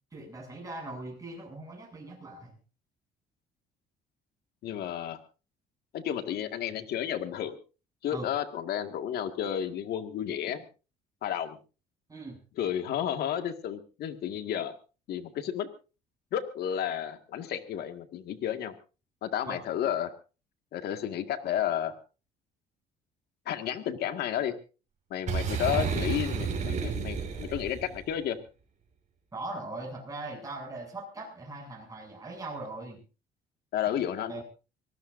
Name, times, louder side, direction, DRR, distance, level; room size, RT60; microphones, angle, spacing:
voice 1, 0.1-2.6 8.1-8.3 12.1-12.4 19.5-19.6 29.3-33.0 34.2-34.4, right 2 dB, 20° right, -1 dB, 7.8 m, -40 dB
voice 2, 4.6-5.2 5.9-7.6 8.0-10.6 11.2-11.6 12.6-14.8 15.1-15.7 16.3-18.8 19.2-20.1 20.7-21.9 23.5-24.5 25.1-28.4 33.7-34.4, left 10 dB, 70° left, 8 dB, 2.0 m, -32 dB
Boom, 25.3-28.0, right 6 dB, 45° right, 5.2 m, -31 dB
24.5 x 19.0 x 2.7 m, 0.34 s
cardioid pair, 110°, 17 cm